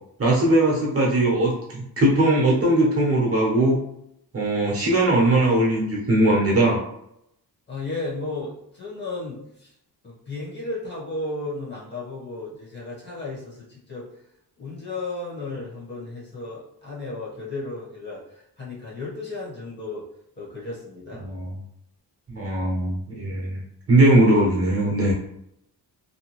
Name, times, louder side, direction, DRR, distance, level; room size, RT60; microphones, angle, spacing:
voice 1, 0.2-3.8 4.3-6.8 21.2-21.5 22.3-23.6 23.9-25.1, right 1 dB, 35° right, -3 dB, 0.8 m, -20 dB
voice 2, 7.7-9.7 10.0-14.0 14.6-20.0 20.4-21.3, left 2 dB, 25° left, -6 dB, 1.0 m, -34 dB
2.7 x 2.2 x 2.9 m, 0.77 s
wide cardioid pair, 140°, 40 cm